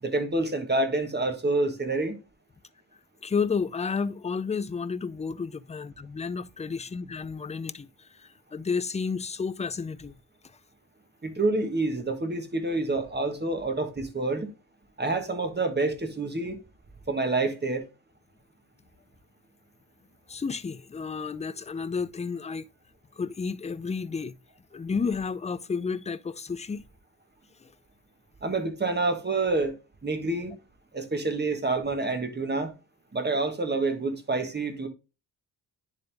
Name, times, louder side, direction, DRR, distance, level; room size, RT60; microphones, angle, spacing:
voice 1, 0.0-2.2 11.2-14.5 15.0-16.6 17.1-17.9 28.4-29.8 30.0-30.5 30.9-32.7 33.1-34.9, right 2 dB, 25° right, 1.5 m, -27 dB
voice 2, 3.2-10.1 20.3-22.6 23.2-24.3 24.7-26.8 27.6-27.7, left 5 dB, 15° left, 0.4 m, -31 dB
10.0 x 3.6 x 3.4 m
cardioid pair, 85°, 44 cm